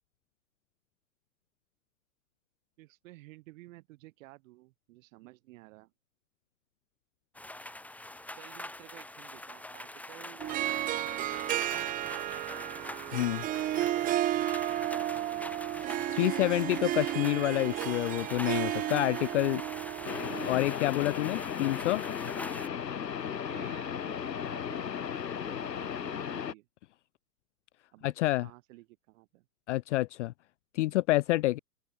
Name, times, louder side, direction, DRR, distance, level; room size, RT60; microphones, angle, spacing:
voice 1, 2.8-5.9 8.3-10.5 11.6-12.6 13.4-15.5 23.4-26.7 27.9-29.4, right 20 dB, 50° right, 6.8 m, -54 dB
sound 1, 7.3-22.7, left 1 dB, 5° left, 2.3 m, -44 dB
Harp, 10.4-20.7, right 13 dB, 20° right, 0.7 m, -33 dB
voice 2, 13.1-13.4 16.1-19.6 20.5-22.0 28.0-28.5 29.7-30.3 30.7-31.6, left 17 dB, 50° left, 0.5 m, -28 dB
sound 2, 20.0-26.5, left 8 dB, 85° left, 3.3 m, -35 dB
open air
hypercardioid pair, 120°, 48 cm